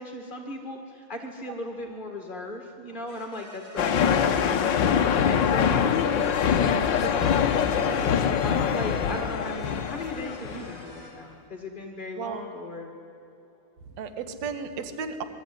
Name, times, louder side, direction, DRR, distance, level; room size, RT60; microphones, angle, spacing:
voice 1, 0.0-12.9, left 1 dB, 20° left, 2 dB, 1.5 m, -38 dB
sound 1, 3.1-11.1, equal, 25° right, 6.3 m, -48 dB
sound 2, 3.8-10.8, left 7 dB, 75° left, 1.0 m, -24 dB
voice 2, 13.9-15.2, right 6 dB, 60° right, 9 dB, 2.6 m, -34 dB
27.0 x 22.0 x 9.7 m, 2.9 s
omnidirectional pair, 3.8 m